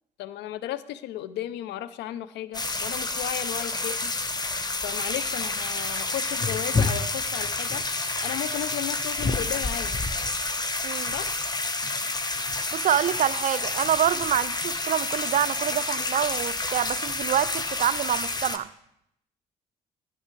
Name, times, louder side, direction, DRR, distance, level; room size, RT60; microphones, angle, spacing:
voice 1, 0.2-4.1 4.8-7.8 8.2-9.9 11.1-11.3, left 12 dB, 65° left, 0.5 m, -34 dB
sound 1, 2.5-18.6, left 3 dB, 20° left, 0.9 m, -29 dB
voice 2, 10.8-11.1 12.7-18.7, right 10 dB, 45° right, 0.4 m, -26 dB
11.0 x 11.0 x 3.3 m
hypercardioid pair, 45°, 19 cm